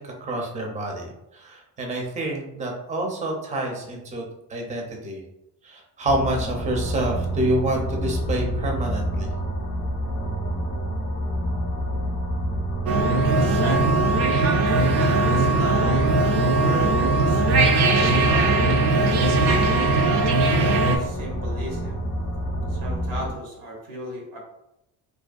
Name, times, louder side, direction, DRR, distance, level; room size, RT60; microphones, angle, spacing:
voice 1, 0.2-4.2 4.5-5.2 5.6-9.3, right 1 dB, 20° right, 0 dB, 0.5 m, -27 dB
sound 1, 6.1-23.3, equal, 35° left, 0.5 m, -28 dB
sound 2, 12.9-21.0, right 3 dB, 75° right, 0.5 m, -20 dB
voice 2, 13.2-14.1 15.2-16.1 16.6-19.6 20.4-22.1 22.7-24.4, right 1 dB, 90° right, -1 dB, 0.9 m, -36 dB
2.5 x 2.2 x 2.3 m, 0.85 s
cardioid pair, 95°, 41 cm